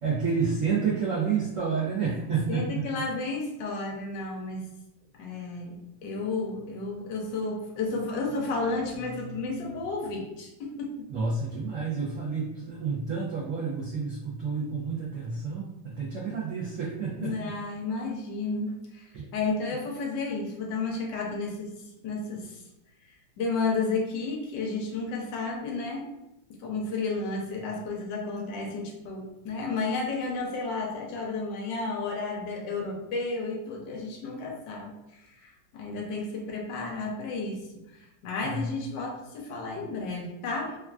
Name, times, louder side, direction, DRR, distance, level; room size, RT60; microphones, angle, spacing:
voice 1, 0.0-2.8 11.1-17.3 19.1-19.2 38.4-38.6, right 5 dB, 85° right, -5 dB, 0.7 m, -29 dB
voice 2, 2.5-4.7 5.2-11.1 17.2-21.8 22.0-22.6 23.4-26.1 26.5-40.8, left 3 dB, 75° left, 0 dB, 1.2 m, -32 dB
3.4 x 2.3 x 2.3 m, 0.91 s
omnidirectional pair, 2.1 m